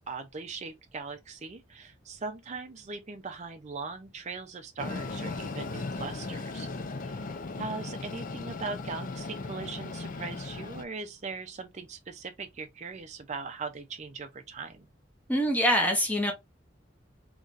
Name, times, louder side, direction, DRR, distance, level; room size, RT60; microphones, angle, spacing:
voice 1, 0.1-6.7 7.0-14.9, right 4 dB, 40° right, 0.5 m, -40 dB
Train, 4.8-10.8, left 3 dB, 45° left, 0.5 m, -37 dB
voice 2, 15.3-16.3, equal, 10° left, 0.8 m, -24 dB
3.9 x 3.0 x 2.5 m
head